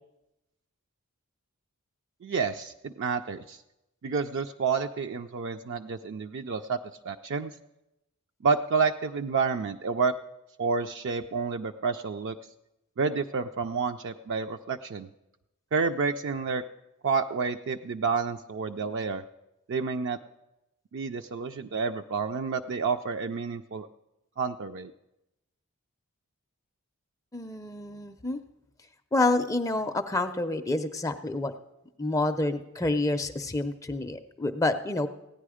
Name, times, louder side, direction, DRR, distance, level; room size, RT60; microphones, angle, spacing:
voice 1, 2.2-3.6 4.0-6.8 7.0-7.5 8.4-10.1 10.6-12.4 13.0-15.1 15.7-16.6 17.0-19.2 19.7-20.2 20.9-23.9 24.4-24.9, right 5 dB, 55° right, 6 dB, 0.4 m, -29 dB
voice 2, 27.3-28.4 29.1-31.5 32.0-35.1, left 2 dB, 15° left, 8 dB, 0.4 m, -28 dB
16.0 x 9.7 x 4.9 m, 0.92 s
head